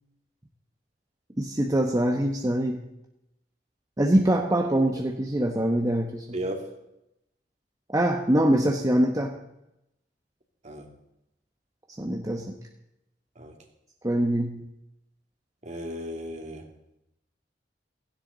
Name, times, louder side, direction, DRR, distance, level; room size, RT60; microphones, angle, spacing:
voice 1, 1.4-2.8 4.0-6.4 7.9-9.3 12.0-12.6 14.0-14.6, right 1 dB, 20° right, 1 dB, 1.1 m, -24 dB
voice 2, 6.3-6.7 10.6-10.9 13.4-13.5 15.6-16.7, right 1 dB, 40° right, 3 dB, 2.4 m, -34 dB
16.5 x 16.0 x 4.0 m, 0.85 s
head